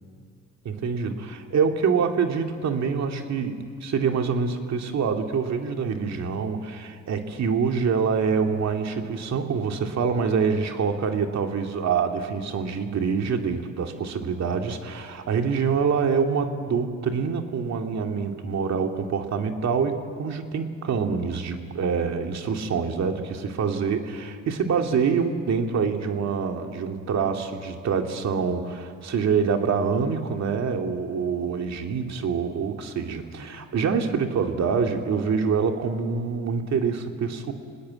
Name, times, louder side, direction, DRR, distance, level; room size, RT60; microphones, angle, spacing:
voice 1, 0.6-37.5, right 5 dB, 60° right, 4 dB, 2.4 m, -26 dB
25.5 x 20.0 x 8.8 m, 2.1 s
cardioid pair, 90°, 30 cm